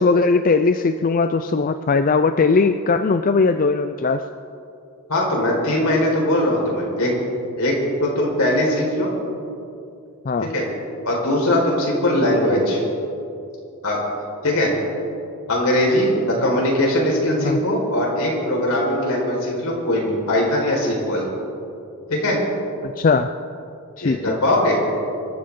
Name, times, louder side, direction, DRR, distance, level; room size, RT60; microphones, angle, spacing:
voice 1, 0.0-4.2 10.3-10.5 17.4-17.6 22.8-23.3 24.0-24.2, left 4 dB, 40° left, 9 dB, 0.4 m, -19 dB
voice 2, 5.1-7.1 7.5-7.7 8.0-9.1 10.5-10.6 11.0-12.8 13.8-14.0 14.4-14.7 15.5-21.2 22.1-22.4 24.0-24.8, left 1 dB, 75° left, -2 dB, 4.9 m, -20 dB
26.5 x 13.0 x 3.8 m, 2.6 s
head